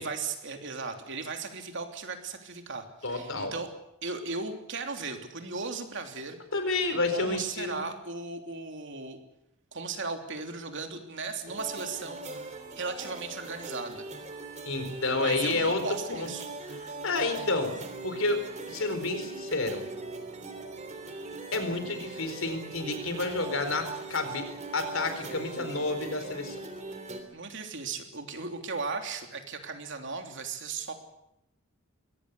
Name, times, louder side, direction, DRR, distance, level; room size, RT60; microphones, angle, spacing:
voice 1, 0.0-3.7 4.0-6.4 7.1-9.2 9.7-14.1 15.1-16.5 27.3-30.9, right 4 dB, 60° right, 5 dB, 3.2 m, -36 dB
voice 2, 3.0-3.5 6.5-7.9 14.6-15.8 16.1-16.3 16.7-17.7 18.0-19.8 21.5-26.6, left 3 dB, 65° left, 8 dB, 4.3 m, -30 dB
sound 1, 11.5-27.2, right 2 dB, 35° right, 3.3 m, -41 dB
23.0 x 18.5 x 8.3 m, 0.84 s
head